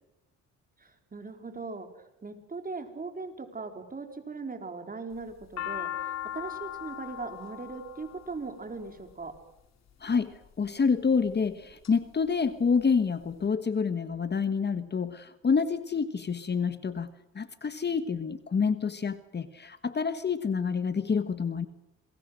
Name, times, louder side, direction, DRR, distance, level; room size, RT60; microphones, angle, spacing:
voice 1, 0.8-1.9 2.2-9.3, right 4 dB, 30° right, 6 dB, 4.2 m, -39 dB
sound 1, 5.1-9.4 10.2-10.7 11.3-11.9 12.3-12.4 12.5-13.4, left 11 dB, 60° left, 2.6 m, -38 dB
voice 2, 10.0-21.7, left 5 dB, 35° left, 12 dB, 1.4 m, -28 dB
27.5 x 22.0 x 6.5 m, 0.88 s
cardioid pair, 90°, 30 cm